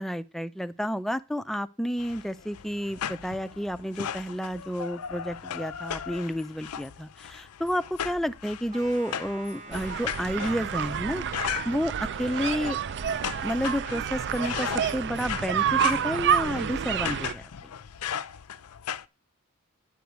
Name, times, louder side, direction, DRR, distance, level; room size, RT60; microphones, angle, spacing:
voice 1, 0.0-11.2 11.7-12.8 13.4-17.4, equal, ahead, 0.4 m, -30 dB
sound 1, 2.0-19.0, left 9 dB, 85° left, 0.5 m, -37 dB
sound 2, 8.7-15.2, right 3 dB, 35° right, 2.1 m, -47 dB
sound 3, 9.7-17.3, right 8 dB, 55° right, 0.4 m, -29 dB
10.5 x 4.7 x 8.1 m
head